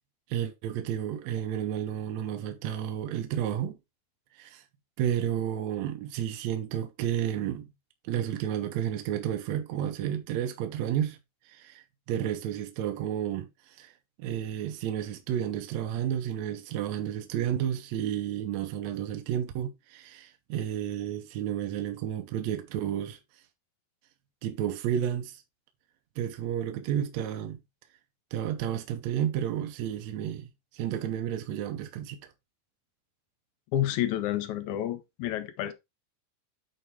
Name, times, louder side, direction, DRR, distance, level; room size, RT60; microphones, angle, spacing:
voice 1, 0.3-3.8 4.4-4.6 5.0-7.7 8.0-11.2 11.5-13.9 14.2-23.2 24.4-25.4 26.2-27.6 28.3-32.2, right 10 dB, 70° right, 1.8 m, -31 dB
voice 2, 33.7-35.7, left 12 dB, 75° left, 1.9 m, -29 dB
8.2 x 4.3 x 3.5 m
omnidirectional pair, 4.0 m